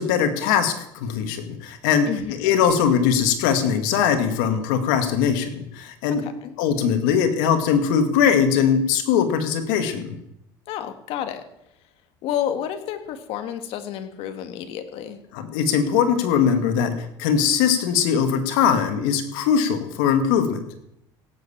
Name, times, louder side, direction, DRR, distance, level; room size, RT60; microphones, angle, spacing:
voice 1, 0.0-2.1 2.4-6.2 6.6-10.2 15.3-20.6, left 7 dB, 85° left, 7 dB, 2.3 m, -21 dB
voice 2, 2.1-2.5 6.1-6.6 10.7-11.4 12.2-15.2, left 10 dB, 60° left, 8 dB, 1.9 m, -30 dB
17.0 x 8.0 x 7.4 m, 0.78 s
cardioid pair, 125°, 11 cm